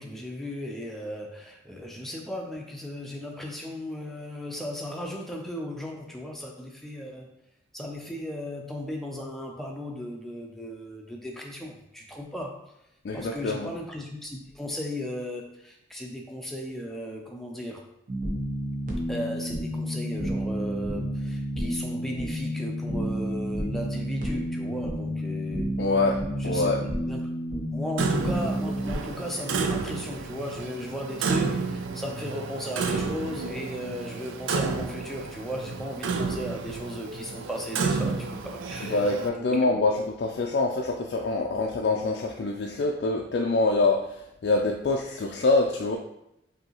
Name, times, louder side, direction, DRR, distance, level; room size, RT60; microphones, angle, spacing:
voice 1, 0.0-7.3 7.7-12.7 13.1-17.8 19.1-25.7 26.4-27.3 27.7-40.0, equal, ahead, 0 dB, 0.5 m, -36 dB
voice 2, 13.0-13.7 25.8-26.2 26.4-26.8 38.8-46.0, left 3 dB, 60° left, 1 dB, 0.3 m, -25 dB
sound 1, 18.1-29.0, equal, 40° right, 0.8 m, -30 dB
Clock, 28.0-39.3, right 4 dB, 85° right, 0.4 m, -31 dB
5.2 x 2.7 x 2.9 m, 0.83 s
head